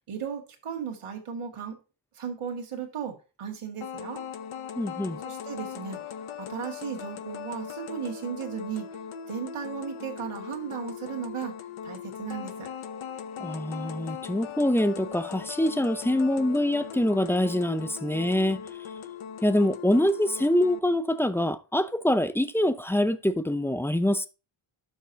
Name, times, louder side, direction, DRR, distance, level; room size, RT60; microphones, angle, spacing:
voice 1, 0.1-1.8 2.1-4.2 5.2-6.0 6.4-8.9 9.3-11.5 11.8-12.7, right 7 dB, 85° right, 2.2 m, -35 dB
sound 1, 3.8-20.8, left 7 dB, 70° left, 0.9 m, -39 dB
voice 2, 4.8-5.2 13.4-18.6 19.4-24.3, left 1 dB, 5° left, 0.5 m, -25 dB
11.5 x 6.4 x 2.8 m
wide cardioid pair, 155°, 50 cm